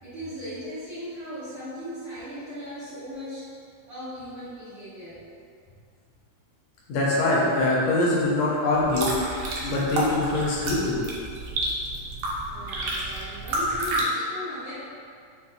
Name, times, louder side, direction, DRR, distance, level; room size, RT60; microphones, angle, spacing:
voice 1, 0.0-5.2 12.4-14.7, equal, 60° right, -17 dB, 1.6 m, -38 dB
voice 2, 6.9-9.1 9.6-11.0, left 2 dB, 80° left, -5 dB, 1.7 m, -23 dB
sound 1, 8.7-14.0, right 1 dB, 80° right, 1.4 m, -30 dB
5.3 x 2.1 x 2.4 m, 2.3 s
omnidirectional pair, 3.4 m